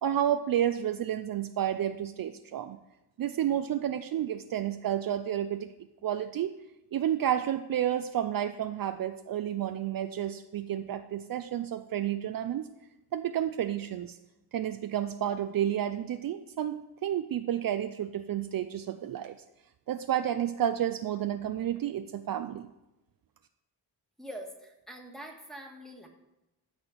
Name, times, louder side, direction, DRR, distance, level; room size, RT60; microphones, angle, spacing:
voice 1, 0.0-2.8 3.2-5.7 6.0-6.6 6.9-12.7 13.1-14.2 14.5-19.4 19.9-22.7, right 10 dB, 55° right, 9 dB, 0.5 m, -31 dB
voice 2, 24.2-26.1, equal, ahead, 1 dB, 1.7 m, -44 dB
13.0 x 4.4 x 6.7 m, 0.93 s
wide cardioid pair, 125°, 41 cm